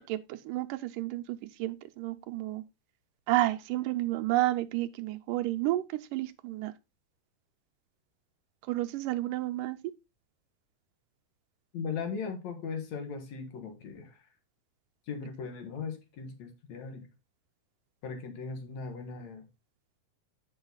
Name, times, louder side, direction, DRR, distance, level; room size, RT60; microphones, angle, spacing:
voice 1, 0.1-1.2 1.6-2.6 3.3-6.7 8.7-9.8, right 16 dB, 85° right, 2.4 m, -31 dB
voice 2, 11.7-14.2 15.1-17.1 18.0-19.5, left 5 dB, 60° left, 2.9 m, -38 dB
8.8 x 6.4 x 3.9 m
omnidirectional pair, 3.7 m